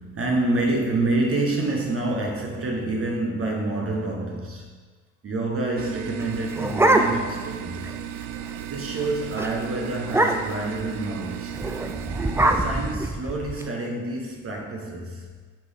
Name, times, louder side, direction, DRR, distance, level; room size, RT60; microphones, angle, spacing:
voice 1, 0.0-4.8 5.2-7.9 8.7-11.7 12.5-15.3, right 2 dB, 35° right, 0 dB, 1.1 m, -27 dB
sound 1, 5.8-13.0, right 10 dB, 65° right, 0.5 m, -35 dB
sound 2, 6.2-7.5 7.8-7.9 8.2-8.5 8.9-9.1 9.4-9.5 10.0-10.7 11.6-13.6, right 1 dB, 5° right, 0.5 m, -23 dB
10.5 x 3.6 x 3.6 m, 1.5 s
hypercardioid pair, 70°, 36 cm